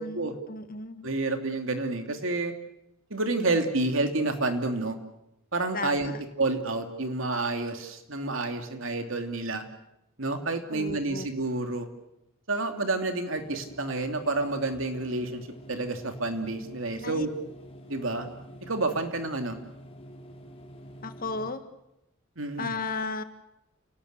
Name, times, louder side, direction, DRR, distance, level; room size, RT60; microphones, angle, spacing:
voice 1, 0.0-1.1 5.7-6.2 10.7-11.3 17.0-17.3 21.0-21.6 22.6-23.2, left 3 dB, 45° left, 10 dB, 1.5 m, -34 dB
voice 2, 1.0-2.5 3.1-5.0 5.5-6.1 6.4-9.6 10.2-11.9 12.5-17.3 17.9-18.3 18.7-19.6 22.4-22.7, right 2 dB, 65° right, 6 dB, 2.8 m, -29 dB
sound 1, 13.3-21.5, equal, 30° left, 3.7 m, -47 dB
30.0 x 18.5 x 8.1 m, 0.86 s
head